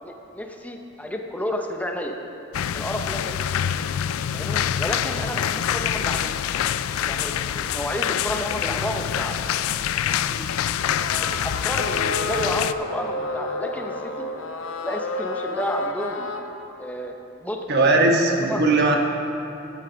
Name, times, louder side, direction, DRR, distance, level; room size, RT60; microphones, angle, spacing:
voice 1, 0.0-2.2 2.7-3.4 4.3-6.4 7.0-9.4 10.0-10.4 11.2-14.3 14.8-16.3 16.8-17.2 17.4-17.6 18.4-18.6, equal, 5° left, 3 dB, 0.7 m, -31 dB
sound 1, 2.5-12.7, left 9 dB, 90° left, 0.3 m, -26 dB
sound 2, 11.0-16.4, left 2 dB, 70° left, 0.8 m, -30 dB
voice 2, 17.7-19.0, right 2 dB, 55° right, 1 dB, 1.2 m, -18 dB
14.5 x 7.2 x 5.2 m, 2.9 s
head